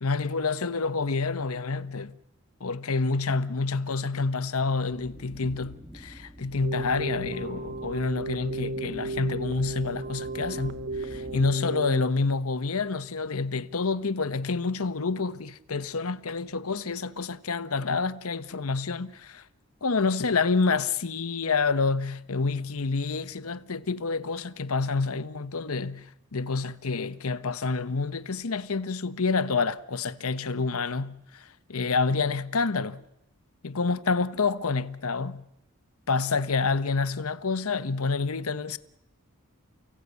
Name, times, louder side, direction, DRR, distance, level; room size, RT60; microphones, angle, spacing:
voice 1, 0.0-2.1 2.6-19.4 19.8-26.1 26.3-33.0 33.6-35.4 36.1-38.8, left 4 dB, 80° left, 1.0 m, -28 dB
sound 1, 4.9-11.5, equal, 5° right, 2.1 m, -46 dB
Keyboard (musical), 6.6-12.0, right 3 dB, 50° right, 0.9 m, -35 dB
29.5 x 17.0 x 8.3 m
head